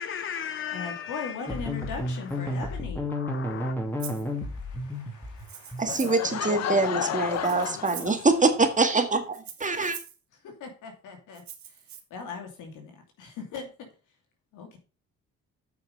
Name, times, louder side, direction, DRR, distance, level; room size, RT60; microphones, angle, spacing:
voice 1, 0.0-1.5 2.5-2.6 3.1-3.8, left 8 dB, 45° left, 0.6 m, -36 dB
voice 2, 0.7-3.1 3.8-6.1 10.4-11.8 12.1-13.7 14.5-14.8, left 5 dB, 90° left, 2.6 m, -40 dB
sound 1, 1.5-6.1, left 1 dB, 5° left, 2.5 m, -32 dB
Rattle (instrument), 4.0-4.3 5.4-6.3 7.3-8.2 9.3-10.2 11.3-12.0, right 9 dB, 70° right, 1.9 m, -43 dB
voice 3, 5.8-10.0, right 3 dB, 25° right, 1.8 m, -24 dB
Laughter / Crowd, 5.9-8.7, left 9 dB, 60° left, 1.0 m, -32 dB
8.5 x 5.9 x 5.3 m
cardioid pair, 90°, 30 cm